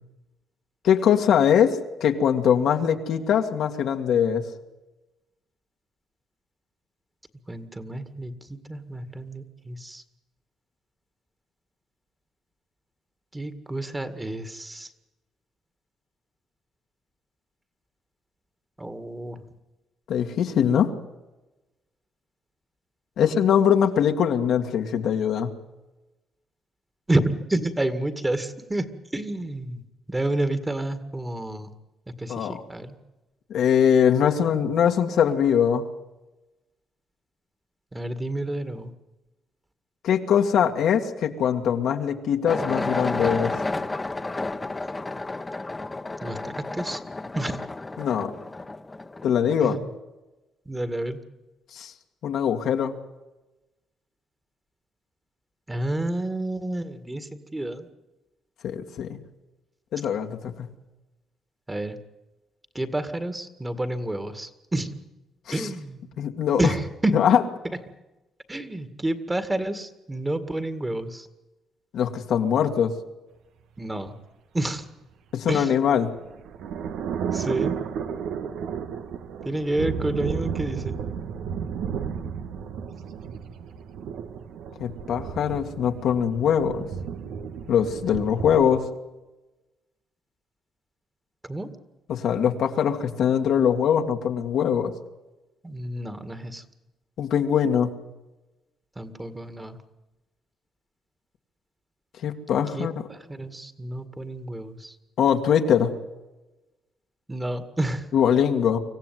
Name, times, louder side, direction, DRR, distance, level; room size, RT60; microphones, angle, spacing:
voice 1, 0.8-4.4 20.1-20.9 23.2-25.5 32.3-32.6 33.5-35.9 40.0-43.6 48.0-48.3 49.2-49.8 51.7-51.9 52.2-53.0 58.6-59.2 59.9-60.7 65.6-65.7 66.2-66.6 67.1-67.4 71.9-72.9 75.3-76.1 84.8-86.9 87.7-88.9 92.1-94.9 97.2-97.9 102.2-102.9 105.2-105.9 108.1-108.8, left 8 dB, 75° left, 4 dB, 2.0 m, -22 dB
voice 2, 7.5-10.0 13.3-14.9 18.8-19.4 27.1-29.8 30.1-31.7 32.2-33.0 37.9-38.9 46.2-47.0 47.4-47.6 49.6-49.9 50.7-51.2 55.7-57.9 61.7-62.0 62.7-65.0 65.5-66.0 66.6-67.2 68.5-71.3 73.8-74.1 74.5-74.9 75.5-75.7 77.3-77.7 79.4-81.0 91.4-91.7 95.6-96.6 99.0-99.8 102.7-105.0 107.3-108.1, right 1 dB, 15° right, 10 dB, 2.0 m, -29 dB
sound 1, 42.5-49.8, left 2 dB, 20° left, 1.3 m, -31 dB
sound 2, 75.7-88.8, right 7 dB, 80° right, 1.5 m, -33 dB
25.5 x 15.5 x 9.3 m, 1.1 s
cardioid pair, 90°, 0 cm